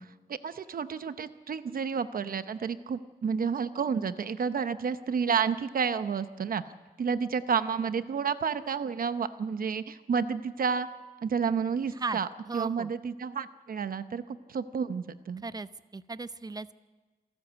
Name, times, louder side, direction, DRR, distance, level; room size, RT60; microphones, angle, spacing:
voice 1, 0.0-6.6 7.0-10.9 11.2-12.3 12.5-15.4, right 6 dB, 65° right, 12 dB, 0.8 m, -30 dB
voice 2, 12.5-12.9 15.4-16.7, right 3 dB, 25° right, 14 dB, 0.6 m, -36 dB
27.5 x 13.5 x 8.1 m, 1.3 s
wide cardioid pair, 135°, 16 cm